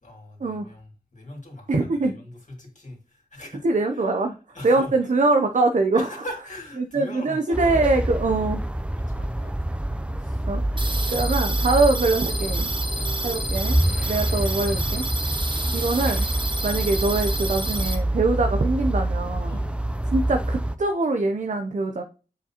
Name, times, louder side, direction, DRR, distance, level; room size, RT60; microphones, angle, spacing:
voice 1, 0.0-3.6 3.9-4.2 4.5-4.9 5.9-7.9 8.4-8.5 9.0-9.6 10.2-10.4 11.0-11.4 12.9-13.3 18.4-18.5 19.5-19.9, left 1 dB, 50° left, 0 dB, 2.4 m, -41 dB
voice 2, 1.7-2.2 3.6-4.4 4.6-6.1 6.8-8.6 10.5-12.7 13.2-13.8 14.0-15.0 15.7-16.3 16.6-19.6 20.1-22.0, right 3 dB, 50° right, 5 dB, 0.6 m, -23 dB
sound 1, 7.5-20.8, right 1 dB, 5° right, 0.5 m, -26 dB
sound 2, 10.8-17.9, right 2 dB, 30° right, 1.1 m, -30 dB
6.5 x 5.0 x 2.9 m, 0.34 s
wide cardioid pair, 60°, 16 cm